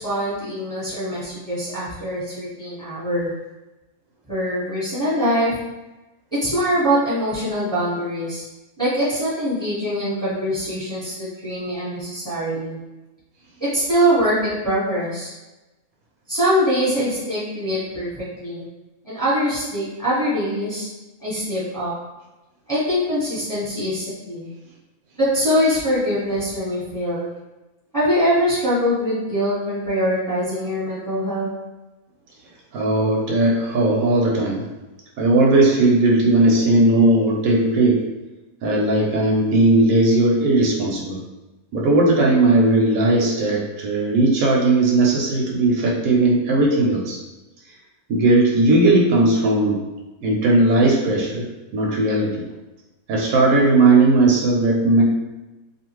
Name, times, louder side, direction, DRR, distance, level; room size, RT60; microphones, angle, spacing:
voice 1, 0.0-3.3 4.3-5.5 6.3-8.4 8.8-12.8 13.6-15.3 16.3-18.6 19.0-20.9 21.2-21.9 22.7-24.5 25.2-27.3 27.9-31.5, equal, 5° left, -10 dB, 1.0 m, -23 dB
voice 2, 32.7-34.6 35.2-38.0 38.6-41.2 41.7-47.2 48.1-49.8 50.2-51.5 51.7-52.5 53.1-55.0, right 2 dB, 80° right, -1 dB, 1.0 m, -17 dB
2.6 x 2.4 x 3.0 m, 1.1 s
omnidirectional pair, 1.5 m